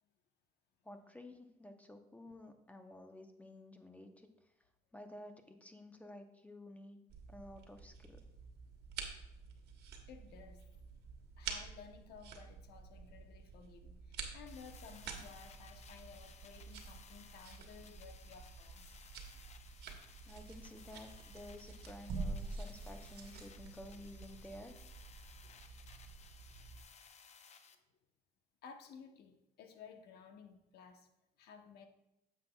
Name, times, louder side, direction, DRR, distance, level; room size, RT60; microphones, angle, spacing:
voice 1, 0.8-4.3 4.9-7.0 7.3-8.2 20.3-24.8, left 1 dB, 10° left, 0.8 m, -52 dB
sound 1, 7.1-26.8, right 4 dB, 75° right, 1.2 m, -49 dB
voice 2, 10.1-10.6 11.4-19.0 28.6-31.1 31.4-31.9, left 6 dB, 70° left, 0.9 m, -56 dB
sound 2, 14.5-27.8, left 6 dB, 40° left, 0.6 m, -60 dB
9.3 x 7.3 x 2.3 m
cardioid pair, 110°, 17 cm